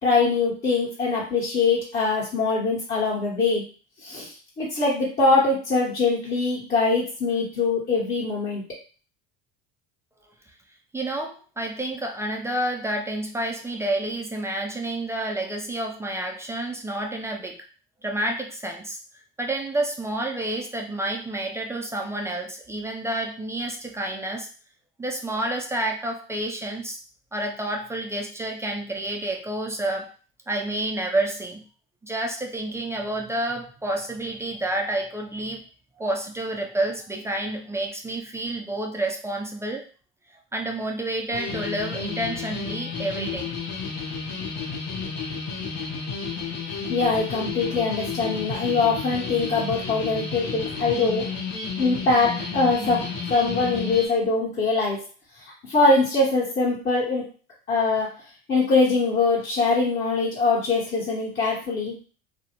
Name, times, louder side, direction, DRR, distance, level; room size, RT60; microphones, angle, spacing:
voice 1, 0.0-3.6 4.0-8.6 46.9-51.2 51.8-55.0 55.6-57.2 57.7-58.1 58.5-61.9, left 3 dB, 30° left, -7 dB, 1.0 m, -23 dB
voice 2, 10.9-17.6 18.0-19.0 19.4-24.5 25.0-27.0 27.3-30.1 30.5-31.6 32.0-35.6 36.0-39.8 40.5-43.5, right 1 dB, 10° right, 1 dB, 0.3 m, -29 dB
sound 1, 41.3-54.1, left 5 dB, 60° left, 0.9 m, -32 dB
2.5 x 2.0 x 2.9 m, 0.37 s
supercardioid pair, 100°, 31 cm